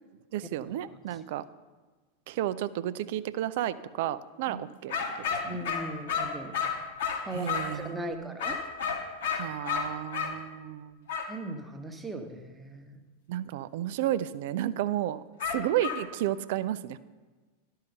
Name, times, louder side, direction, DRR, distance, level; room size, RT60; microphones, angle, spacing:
voice 1, 0.3-1.4 2.3-4.9 5.5-5.6 7.3-8.4 9.2-11.1 13.3-17.0, right 12 dB, 50° right, 15 dB, 0.4 m, -32 dB
sound 1, 4.9-7.8 8.4-10.4 11.1-11.3 15.4-16.1, left 6 dB, 60° left, 1.4 m, -32 dB
voice 2, 5.4-6.5 7.3-8.6 11.2-12.9, right 1 dB, 10° right, 4 dB, 1.1 m, -38 dB
12.0 x 5.6 x 6.5 m, 1.3 s
figure-of-eight pair, 90°, 0 cm